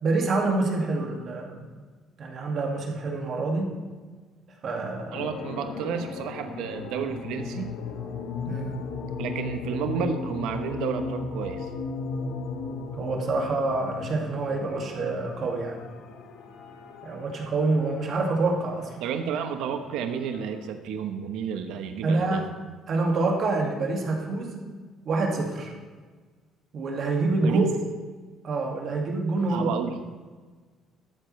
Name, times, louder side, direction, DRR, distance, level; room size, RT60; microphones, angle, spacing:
voice 1, 0.0-1.7 2.2-3.7 4.6-5.2 8.4-8.8 12.9-15.8 17.0-19.0 22.0-22.5 22.9-24.7 25.1-25.7 26.7-27.7 28.4-29.7, right 3 dB, 40° right, 0 dB, 2.0 m, -27 dB
sound 1, 5.1-20.7, left 4 dB, 70° left, 1.2 m, -36 dB
voice 2, 5.1-7.7 9.2-11.7 19.0-22.4 27.4-27.7 29.5-30.0, right 7 dB, 85° right, 7 dB, 0.9 m, -31 dB
13.0 x 12.5 x 3.2 m, 1.4 s
cardioid pair, 165°, 0 cm